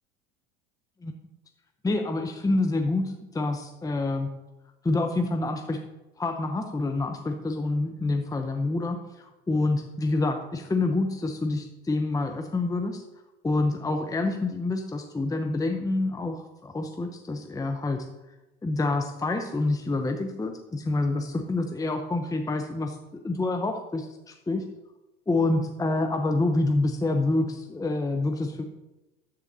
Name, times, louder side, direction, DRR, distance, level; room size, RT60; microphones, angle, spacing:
voice 1, 1.8-4.3 4.8-5.8 6.2-13.0 13.4-18.1 18.6-23.0 23.2-24.6 25.3-28.6, left 2 dB, 10° left, 5 dB, 0.9 m, -27 dB
10.5 x 7.9 x 4.1 m, 1.0 s
hypercardioid pair, 85°, 30 cm